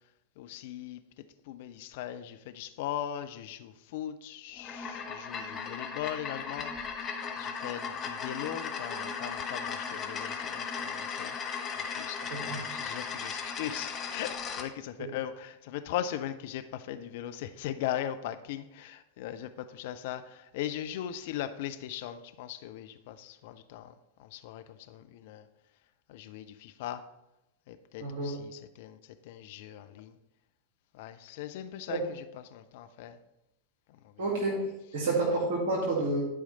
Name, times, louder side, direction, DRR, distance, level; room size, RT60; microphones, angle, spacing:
voice 1, 0.4-1.0 1.5-6.7 7.4-11.4 11.8-25.5 26.1-27.0 27.7-29.0 29.2-30.2 30.9-33.2 33.9-34.2, left 11 dB, 50° left, 10 dB, 0.5 m, -39 dB
sound 1, 4.6-14.7, left 6 dB, 25° left, 1.0 m, -37 dB
voice 2, 34.2-34.7 34.9-36.2, right 2 dB, 50° right, -3 dB, 2.1 m, -29 dB
11.0 x 4.9 x 4.1 m, 0.90 s
figure-of-eight pair, 90°, 0 cm